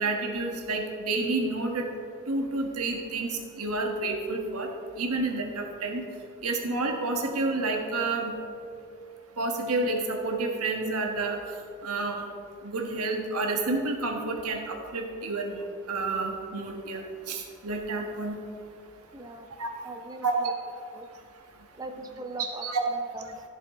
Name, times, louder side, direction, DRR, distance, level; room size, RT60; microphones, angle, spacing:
voice 1, 0.0-1.9 2.3-3.3 3.6-4.7 5.0-6.0 6.4-8.3 9.4-11.4 11.8-12.2 12.6-17.0 17.3-18.4 19.6-19.7 20.2-20.5 22.4-22.8, right 3 dB, 90° right, 2 dB, 1.4 m, -29 dB
voice 2, 19.1-19.5 19.8-20.5 20.9-21.1 21.8-23.5, right 2 dB, 15° right, 5 dB, 0.5 m, -40 dB
14.0 x 7.5 x 3.6 m, 2.5 s
head